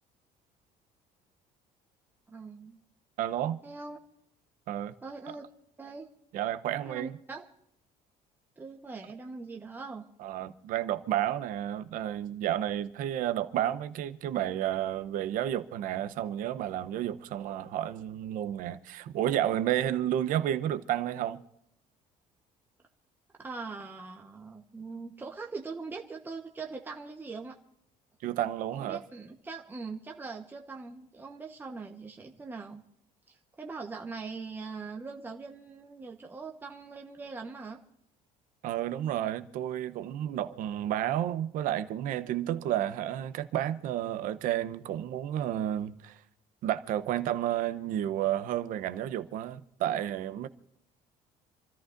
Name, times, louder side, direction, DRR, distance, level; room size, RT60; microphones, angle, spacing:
voice 1, 2.3-2.8 3.6-4.0 5.0-5.4 5.8-6.1 6.8-7.4 8.6-10.1 23.4-27.6 28.7-32.8 33.3-37.8, right 4 dB, 15° right, 1.1 m, -41 dB
voice 2, 3.2-3.6 4.7-4.9 5.3-5.4 6.3-7.2 10.2-21.4 28.2-29.0 38.6-46.2 46.6-50.5, right 11 dB, 65° right, 0.8 m, -31 dB
28.5 x 14.0 x 2.6 m
cardioid pair, 140°, 15 cm